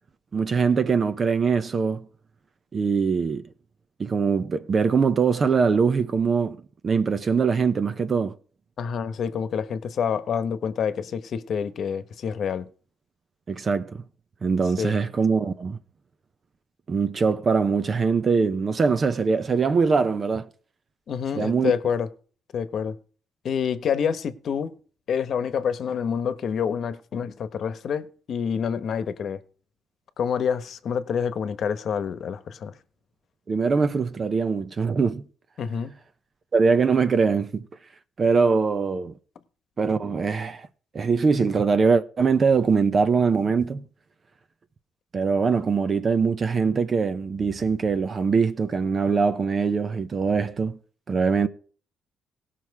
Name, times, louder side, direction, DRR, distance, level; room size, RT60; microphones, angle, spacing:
voice 1, 0.3-2.1 2.7-3.4 4.0-6.6 6.8-8.3 13.5-14.0 14.4-15.8 16.9-20.5 21.3-21.7 33.5-35.2 36.5-37.6 38.2-39.1 39.8-40.7 40.9-43.8 45.1-50.8 51.1-51.5, right 5 dB, 40° right, 0.8 m, -22 dB
voice 2, 8.8-12.7 14.8-14.9 21.1-22.1 22.5-23.0 23.4-24.7 25.1-29.4 30.2-32.7 35.6-35.9, left 7 dB, 60° left, 1.1 m, -27 dB
17.5 x 5.9 x 4.7 m
cardioid pair, 90°, 0 cm